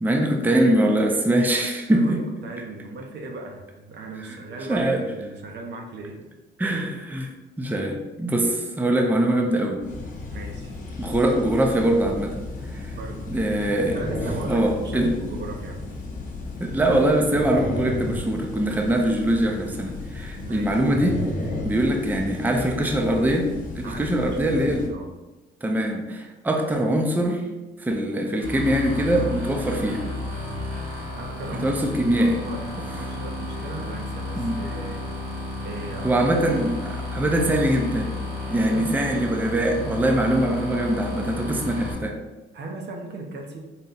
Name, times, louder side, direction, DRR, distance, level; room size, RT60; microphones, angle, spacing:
voice 1, 0.0-2.2 4.2-4.4 4.7-5.1 6.6-7.3 7.6-9.8 11.0-12.4 12.7-12.9 13.3-14.0 14.4-15.1 16.6-21.2 21.6-24.9 25.6-27.4 27.8-30.1 31.6-32.4 34.4-34.6 36.0-38.2 38.5-42.2, right 1 dB, 10° right, 1 dB, 0.5 m, -23 dB
voice 2, 1.9-6.3 10.3-10.7 12.9-13.3 13.9-15.8 20.4-20.7 23.8-25.1 31.2-35.1 35.6-36.4 38.5-38.9 42.5-43.6, right 2 dB, 60° right, 1 dB, 0.8 m, -37 dB
sound 1, 9.8-24.9, left 2 dB, 45° left, 0.9 m, -34 dB
sound 2, 28.4-41.9, left 2 dB, 85° right, 1.5 m, -32 dB
4.1 x 2.3 x 3.9 m, 1.1 s
cardioid pair, 90°, 20 cm